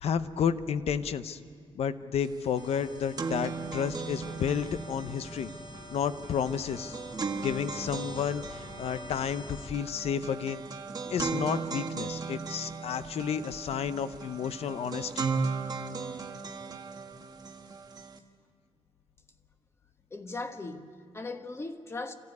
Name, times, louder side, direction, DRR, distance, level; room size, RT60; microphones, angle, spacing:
voice 1, 0.0-1.4 1.7-5.5 5.9-7.0 7.3-10.6 11.1-15.3, left 7 dB, 75° left, 0.8 m, -31 dB
sound 1, 2.2-2.3 2.6-18.2, right 4 dB, 40° right, 1.5 m, -37 dB
sound 2, 2.5-9.7, left 3 dB, 50° left, 1.6 m, -47 dB
voice 2, 20.1-22.1, left 3 dB, 25° left, 1.3 m, -38 dB
27.5 x 14.5 x 9.7 m
cardioid pair, 120°, 10 cm